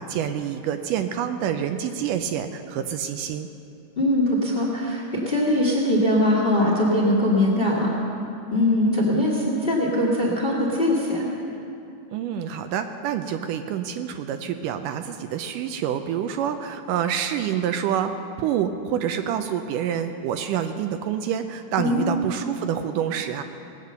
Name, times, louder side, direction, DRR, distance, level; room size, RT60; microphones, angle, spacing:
voice 1, 0.0-3.5 12.1-18.1 18.4-23.4, right 9 dB, 80° right, 8 dB, 2.1 m, -27 dB
voice 2, 4.0-7.9 8.5-11.2 21.8-22.1, left 1 dB, 25° left, -3 dB, 1.3 m, -21 dB
19.5 x 8.3 x 6.8 m, 2.6 s
omnidirectional pair, 4.0 m